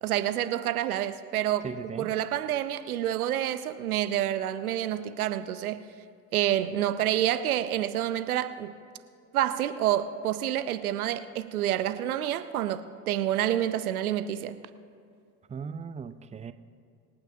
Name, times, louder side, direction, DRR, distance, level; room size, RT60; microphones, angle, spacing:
voice 1, 0.0-1.7 2.0-5.8 6.3-8.7 9.3-14.7, right 12 dB, 90° right, 12 dB, 0.6 m, -28 dB
voice 2, 1.6-2.1 15.5-16.5, right 6 dB, 15° right, 12 dB, 0.6 m, -37 dB
25.5 x 8.8 x 2.7 m, 2.3 s
hypercardioid pair, 70°, 42 cm